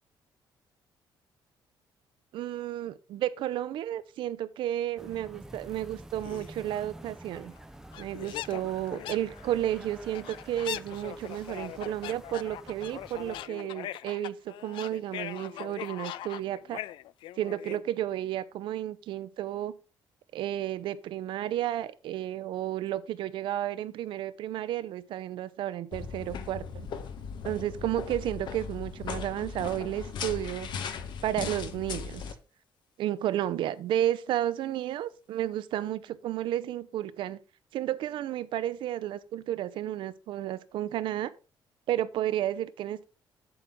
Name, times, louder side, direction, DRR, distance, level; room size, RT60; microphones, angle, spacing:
voice 1, 2.3-7.5 8.0-16.8 17.4-19.7 20.3-26.9 27.4-30.7 31.2-32.2 33.0-37.4 37.7-41.3 41.9-43.0, right 12 dB, 75° right, 0.7 m, -32 dB
sound 1, 5.0-13.5, right 1 dB, 5° right, 0.5 m, -48 dB
sound 2, 6.2-6.5 7.3-7.4 7.6-7.7 7.9-17.8, left 13 dB, 80° left, 0.4 m, -41 dB
sound 3, 25.9-32.3, left 6 dB, 65° left, 1.1 m, -38 dB
7.8 x 7.8 x 3.7 m
cardioid pair, 130°, 8 cm